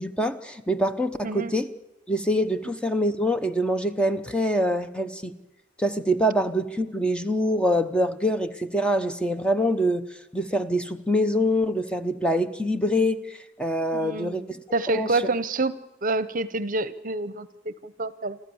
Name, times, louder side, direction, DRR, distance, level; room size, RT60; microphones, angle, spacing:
voice 1, 0.0-1.7 2.1-5.3 5.8-10.1 10.3-14.6 14.9-15.1, equal, 5° left, 9 dB, 0.8 m, -25 dB
voice 2, 13.9-14.4 14.7-15.7 16.0-18.4, right 2 dB, 45° right, 15 dB, 0.8 m, -27 dB
27.5 x 13.5 x 7.1 m, 1.0 s
head